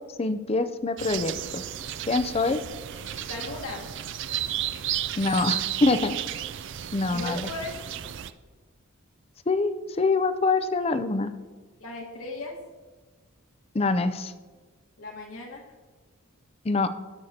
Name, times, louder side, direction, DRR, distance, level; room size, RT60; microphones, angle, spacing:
voice 1, 0.2-1.6 2.1-2.6 5.2-6.2 6.9-7.4 9.5-9.7 10.0-11.3 13.7-14.3 16.7-16.9, left 3 dB, 25° left, 11 dB, 0.4 m, -24 dB
sound 1, 1.0-8.3, right 11 dB, 55° right, 0.4 m, -33 dB
voice 2, 2.9-3.9 7.1-8.1 11.8-12.6 15.0-15.6, left 2 dB, 75° left, 0 dB, 1.6 m, -37 dB
18.5 x 6.4 x 2.8 m, 1.4 s
head